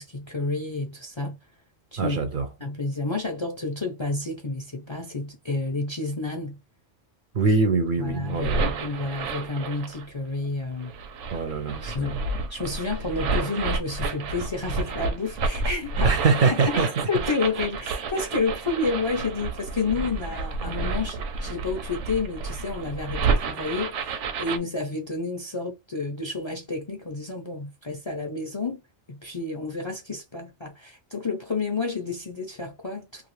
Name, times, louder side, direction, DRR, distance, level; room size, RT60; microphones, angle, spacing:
voice 1, 0.0-1.4 1.9-2.2 2.6-6.6 8.0-10.9 11.9-12.2 12.5-16.2 16.7-16.8 17.1-28.8 29.1-33.3, left 3 dB, 35° left, 0.5 m, -30 dB
voice 2, 2.0-2.5 7.3-8.7 11.3-12.3 16.0-16.9, right 4 dB, 55° right, 0.6 m, -23 dB
sound 1, 8.1-10.1 10.8-24.6, right 4 dB, 85° right, 1.0 m, -30 dB
2.6 x 2.4 x 3.1 m
omnidirectional pair, 1.2 m